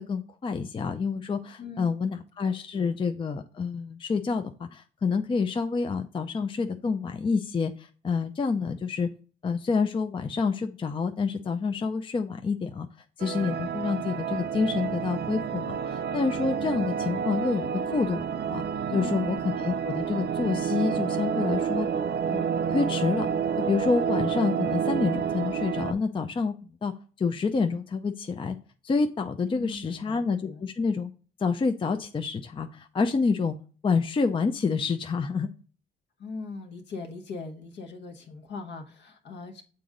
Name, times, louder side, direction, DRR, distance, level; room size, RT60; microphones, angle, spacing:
voice 1, 0.0-9.1 9.4-12.9 13.2-18.6 18.9-21.9 22.3-23.3 23.6-26.5 26.8-26.9 27.2-28.6 28.8-31.1 31.4-33.6 33.8-35.5, left 4 dB, 25° left, 6 dB, 0.5 m, -28 dB
voice 2, 1.6-3.0 18.9-19.5 29.4-30.7 36.2-39.6, left 4 dB, 65° left, 4 dB, 1.2 m, -41 dB
sound 1, 13.2-25.9, right 7 dB, 55° right, 0.5 m, -29 dB
6.9 x 3.9 x 3.7 m, 0.39 s
cardioid pair, 90°, 20 cm